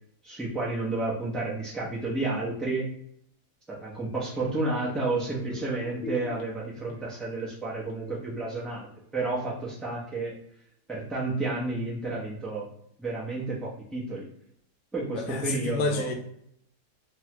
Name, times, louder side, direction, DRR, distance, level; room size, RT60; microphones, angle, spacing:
voice 1, 0.2-2.9 3.7-8.9 9.1-10.3 10.9-12.7 13.0-14.3 14.9-16.1, right 2 dB, ahead, -6 dB, 0.4 m, -31 dB
sound 1, 3.8-9.5 9.9-10.0, left 4 dB, 60° left, 0.8 m, -46 dB
voice 2, 15.1-16.1, left 3 dB, 80° left, 4 dB, 1.1 m, -29 dB
3.1 x 2.2 x 2.9 m, 0.71 s
omnidirectional pair, 1.7 m